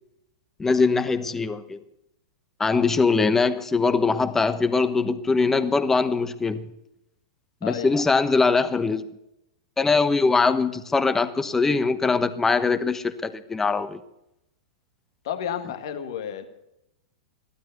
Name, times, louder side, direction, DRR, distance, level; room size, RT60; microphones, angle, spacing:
voice 1, 0.6-1.8 2.6-6.7 7.6-9.0 9.8-14.0, left 4 dB, 10° left, 12 dB, 1.1 m, -22 dB
voice 2, 7.6-8.0 15.2-16.5, left 9 dB, 60° left, 8 dB, 1.9 m, -31 dB
15.0 x 13.0 x 6.7 m, 0.85 s
figure-of-eight pair, 100°, 3 cm